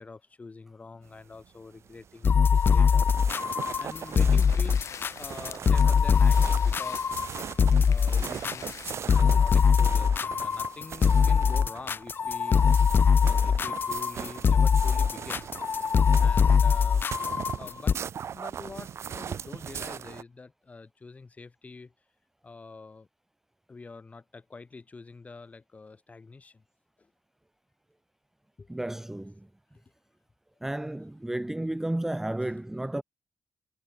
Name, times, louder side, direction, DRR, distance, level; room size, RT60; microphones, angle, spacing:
voice 1, 0.0-3.1 3.8-7.2 7.9-12.7 13.2-15.5 16.2-17.0 17.6-17.9 18.3-21.9 22.4-23.1 23.7-26.6 27.0-27.1 28.6-28.7 32.4-32.5, left 4 dB, 30° left, 7.3 m, -46 dB
sound 1, 1.1-20.2, right 8 dB, 65° right, 1.1 m, -40 dB
sound 2, 2.2-17.9, left 6 dB, 45° left, 0.7 m, -22 dB
sound 3, 3.6-9.0, left 8 dB, 70° left, 5.2 m, -46 dB
voice 2, 28.7-29.3 30.6-33.0, right 1 dB, 5° right, 0.4 m, -32 dB
wide cardioid pair, 130°, 5 cm